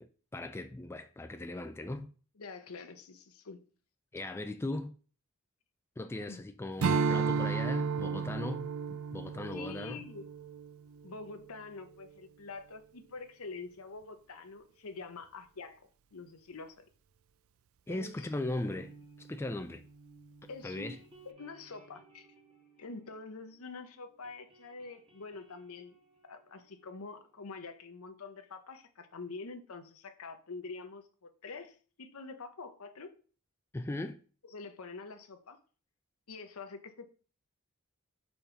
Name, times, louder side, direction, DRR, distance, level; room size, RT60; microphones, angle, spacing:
voice 1, 0.3-2.1 4.1-4.9 6.0-10.0 17.9-19.8 20.6-21.0 33.7-34.2, left 2 dB, 10° left, 0.3 m, -38 dB
voice 2, 2.4-3.6 6.3-6.5 9.5-10.3 11.0-15.8 16.1-16.8 17.9-18.3 20.5-22.3 22.8-26.0 26.3-33.1 34.4-35.6 36.3-37.1, left 4 dB, 75° left, 0.8 m, -46 dB
Strum, 6.8-11.5, right 5 dB, 70° right, 0.5 m, -33 dB
sound 1, 17.9-23.8 24.0-27.5, right 3 dB, 25° right, 1.5 m, -59 dB
5.2 x 4.3 x 4.4 m
head